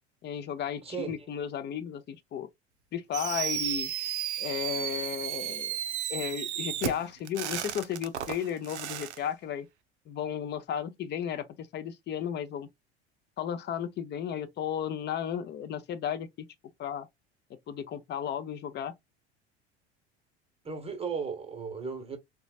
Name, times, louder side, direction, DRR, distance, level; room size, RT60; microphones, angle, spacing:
voice 1, 0.2-2.5 2.9-3.9 4.4-5.8 6.1-9.7 10.1-12.7 13.4-16.5 16.8-17.1 17.7-18.9, left 9 dB, 30° left, 0.6 m, -34 dB
voice 2, 0.8-1.3 20.6-22.2, right 5 dB, 15° right, 1.0 m, -36 dB
Fireworks, 3.1-9.2, right 11 dB, 80° right, 0.5 m, -34 dB
3.9 x 2.3 x 2.3 m
figure-of-eight pair, 70°, 34 cm